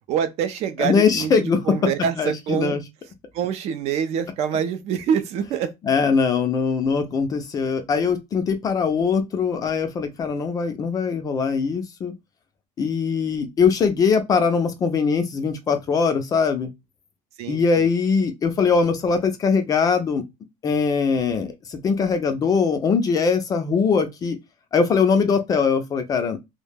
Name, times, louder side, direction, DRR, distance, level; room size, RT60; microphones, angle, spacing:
voice 1, 0.1-2.8 3.3-5.7 17.4-17.9, right 8 dB, 50° right, 0.4 m, -25 dB
voice 2, 0.8-1.8 2.2-2.8 5.8-12.1 12.8-16.7 17.5-20.2 20.6-24.4 24.7-26.4, left 5 dB, 25° left, 0.3 m, -21 dB
2.2 x 2.1 x 3.1 m
cardioid pair, 170°, 14 cm